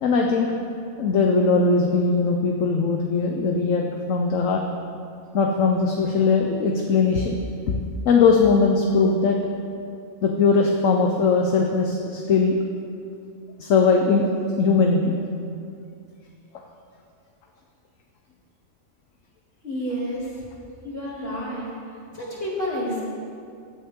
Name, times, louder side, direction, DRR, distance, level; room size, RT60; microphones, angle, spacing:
voice 1, 0.0-0.5 1.0-4.6 5.3-7.4 7.7-7.8 8.0-9.4 10.2-12.6 13.6-15.1, left 4 dB, 70° left, 2 dB, 1.2 m, -20 dB
voice 2, 19.6-20.3 20.8-21.7 22.1-23.0, equal, 45° left, -7 dB, 3.2 m, -29 dB
16.0 x 8.6 x 3.7 m, 2.4 s
omnidirectional pair, 1.4 m